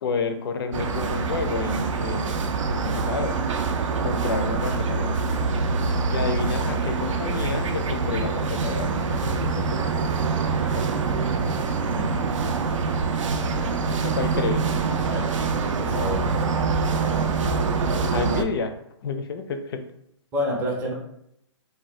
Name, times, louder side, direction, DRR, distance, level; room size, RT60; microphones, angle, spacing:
voice 1, 0.0-3.4 4.0-5.4 6.1-9.9 10.8-10.9 14.1-14.6 18.1-18.7 19.0-19.8, left 4 dB, 50° left, 7 dB, 0.4 m, -30 dB
sound 1, 0.7-18.4, right 4 dB, 85° right, 0.4 m, -25 dB
voice 2, 11.8-12.2 14.8-15.3 15.6-16.3 20.3-20.9, equal, 10° right, -4 dB, 0.5 m, -29 dB
2.6 x 2.2 x 3.1 m, 0.76 s
hypercardioid pair, 155°, 16 cm